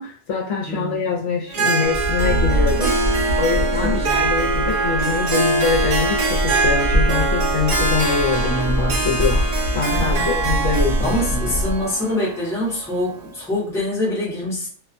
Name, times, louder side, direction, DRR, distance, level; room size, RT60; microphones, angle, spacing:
voice 1, 0.0-3.0 3.4-9.5 9.7-11.6, left 4 dB, 70° left, 0 dB, 0.9 m, -24 dB
voice 2, 0.7-1.1 3.7-4.3 9.8-10.5 11.0-14.7, left 1 dB, 5° left, -6 dB, 0.8 m, -25 dB
Harp, 1.5-13.3, right 3 dB, 80° right, 0.3 m, -23 dB
Wind, 1.9-11.9, equal, 65° right, 0.9 m, -24 dB
2.4 x 2.2 x 2.4 m, 0.43 s
omnidirectional pair, 1.3 m